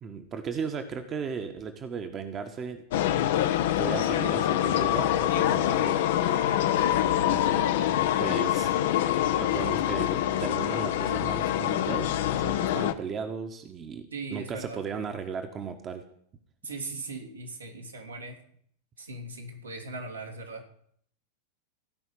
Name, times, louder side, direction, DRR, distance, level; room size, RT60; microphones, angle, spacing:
voice 1, 0.0-2.8 3.8-6.0 6.3-6.4 7.2-7.7 8.2-8.7 9.4-16.0, right 6 dB, 25° right, 6 dB, 1.5 m, -36 dB
sound 1, 2.9-12.9, left 11 dB, 55° left, 0.9 m, -25 dB
voice 2, 14.1-14.8 16.6-18.3 19.0-20.6, right 3 dB, 80° right, -1 dB, 3.2 m, -39 dB
16.5 x 5.7 x 9.4 m, 0.63 s
figure-of-eight pair, 90°, 0 cm